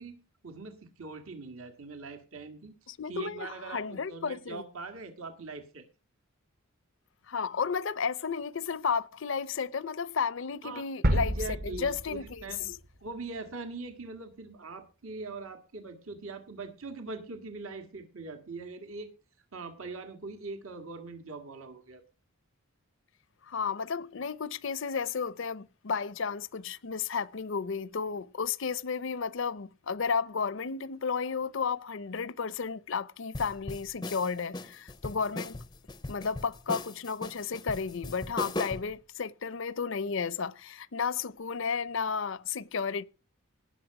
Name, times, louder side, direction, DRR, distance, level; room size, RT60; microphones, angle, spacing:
voice 1, 0.0-2.7 3.1-5.9 10.6-10.8 11.1-12.7 13.0-19.1 19.5-22.0, right 3 dB, 70° right, 1.9 m, -42 dB
voice 2, 2.9-4.6 7.3-11.4 11.6-12.8 23.5-35.6 36.1-43.1, left 5 dB, 60° left, 0.6 m, -33 dB
sound 1, 11.0-13.0 13.4-13.5, equal, 40° right, 0.9 m, -30 dB
sound 2, 33.3-38.9, left 2 dB, 20° left, 0.5 m, -38 dB
18.5 x 6.6 x 4.8 m
head